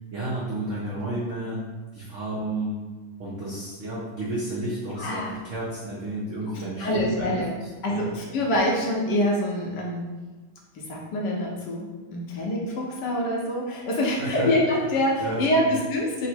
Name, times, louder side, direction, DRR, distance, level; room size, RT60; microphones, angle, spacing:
voice 1, 0.1-1.6 1.9-2.8 3.2-8.2 14.2-14.8 15.2-15.7, right 1 dB, 75° right, -6 dB, 0.7 m, -32 dB
voice 2, 5.0-5.4 6.8-7.5 7.8-10.1 10.7-16.3, left 1 dB, 70° left, -2 dB, 1.2 m, -25 dB
3.8 x 2.0 x 4.3 m, 1.3 s
omnidirectional pair, 2.1 m